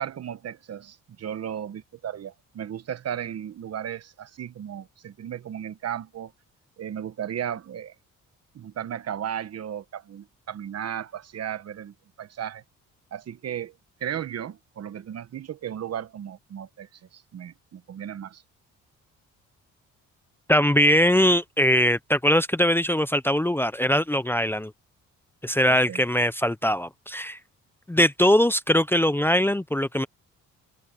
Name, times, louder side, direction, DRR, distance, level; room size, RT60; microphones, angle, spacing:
voice 1, 0.0-6.3 6.8-7.9 8.5-12.6 13.1-18.4 25.7-26.0, right 9 dB, 55° right, 1.3 m, -35 dB
voice 2, 20.5-24.7 25.4-27.4 27.9-30.1, equal, 5° left, 0.7 m, -21 dB
open air
cardioid pair, 90°, 30 cm